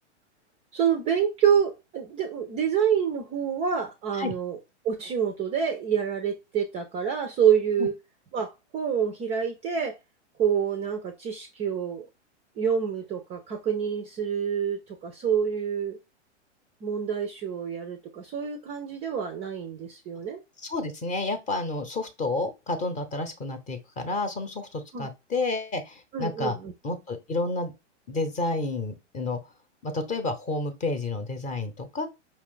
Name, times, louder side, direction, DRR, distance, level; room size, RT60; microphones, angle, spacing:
voice 1, 0.7-4.6 4.8-7.9 8.3-9.9 10.4-12.1 12.6-16.0 16.8-20.4 24.9-25.1 26.1-26.7, right 8 dB, 20° right, 0.4 m, -27 dB
voice 2, 20.6-26.6 26.8-27.7 28.1-29.4 29.8-32.1, left 2 dB, 20° left, 0.8 m, -30 dB
5.2 x 2.4 x 3.7 m
hypercardioid pair, 130°, 36 cm